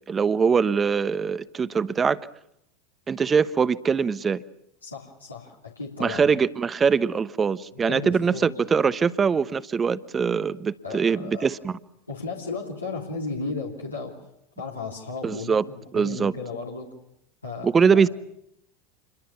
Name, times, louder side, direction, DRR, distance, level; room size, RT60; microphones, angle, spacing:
voice 1, 0.1-2.2 3.1-4.4 6.0-11.7 15.2-15.6 15.9-16.3 17.6-18.1, right 6 dB, 20° right, 16 dB, 1.0 m, -22 dB
voice 2, 4.8-6.2 7.7-8.5 10.8-11.5 12.1-14.2 14.6-16.9 17.4-18.1, left 3 dB, 85° left, -2 dB, 3.3 m, -35 dB
28.0 x 22.5 x 7.1 m, 0.79 s
figure-of-eight pair, 80°, 0 cm